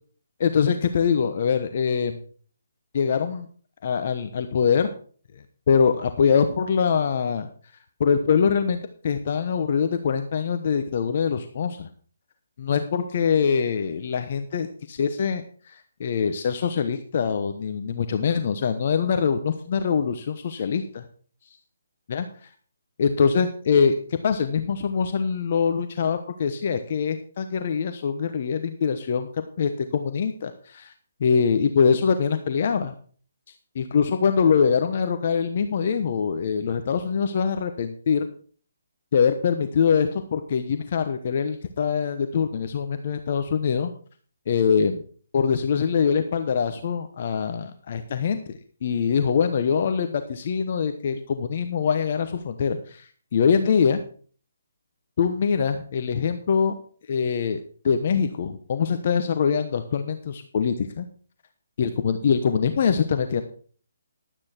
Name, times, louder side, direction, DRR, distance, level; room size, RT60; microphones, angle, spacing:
voice 1, 0.4-2.2 2.9-3.5 3.8-4.9 5.7-7.5 8.0-11.9 12.6-21.0 22.1-22.3 23.0-29.3 29.6-30.9 31.2-32.9 33.7-38.3 39.1-43.9 44.5-45.0 45.3-48.4 48.8-54.0 55.2-56.7 57.1-61.1 61.8-63.4, left 6 dB, 45° left, 8 dB, 1.0 m, -23 dB
12.0 x 8.7 x 4.4 m, 0.44 s
hypercardioid pair, 155°, 0 cm